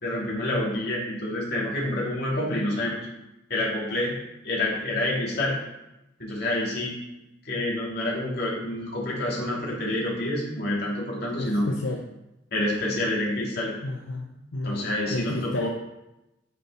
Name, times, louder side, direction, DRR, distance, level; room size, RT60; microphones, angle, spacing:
voice 1, 0.0-3.1 3.5-4.1 4.4-5.5 6.2-7.0 7.4-11.6 12.5-13.7 14.6-15.7, left 1 dB, 55° left, -4 dB, 2.5 m, -28 dB
voice 2, 11.3-12.0 13.8-15.7, left 2 dB, 80° left, 1 dB, 0.7 m, -31 dB
9.3 x 6.0 x 4.0 m, 0.94 s
head